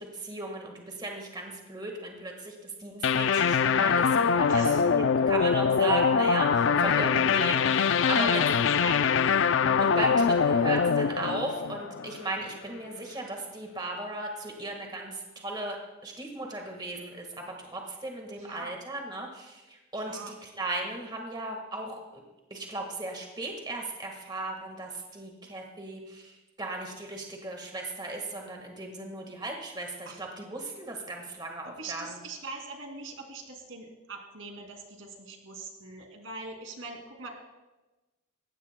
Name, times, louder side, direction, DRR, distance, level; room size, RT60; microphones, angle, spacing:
voice 1, 0.0-8.5 9.8-22.2 22.5-32.2, right 2 dB, 20° right, 2 dB, 1.6 m, -36 dB
sound 1, 3.0-12.4, left 6 dB, 70° left, 0.4 m, -23 dB
voice 2, 4.4-4.8 6.8-7.2 8.1-9.3 18.4-18.7 20.0-20.3 30.1-30.2 31.7-37.3, right 3 dB, 80° right, 2 dB, 2.6 m, -42 dB
19.5 x 16.0 x 2.2 m, 1.1 s
head